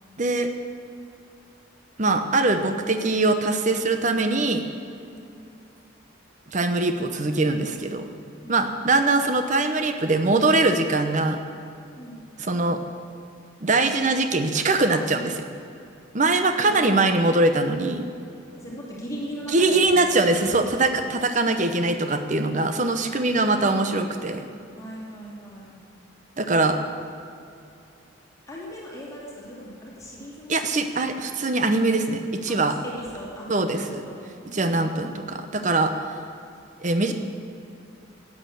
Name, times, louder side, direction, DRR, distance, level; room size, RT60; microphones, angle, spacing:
voice 1, 0.2-0.5 2.0-4.6 6.5-8.1 8.5-11.4 12.4-12.8 13.6-15.5 16.1-18.1 19.5-24.4 26.4-26.8 30.5-32.7 33.5-34.0 34.5-35.9 36.8-37.1, right 2 dB, 40° right, 8 dB, 0.8 m, -22 dB
voice 2, 16.6-17.2 18.6-20.6 23.2-24.0 24.8-25.8 28.5-30.6 32.5-33.5 33.7-34.8, equal, 15° left, -5 dB, 2.6 m, -38 dB
12.0 x 8.7 x 7.7 m, 2.5 s
head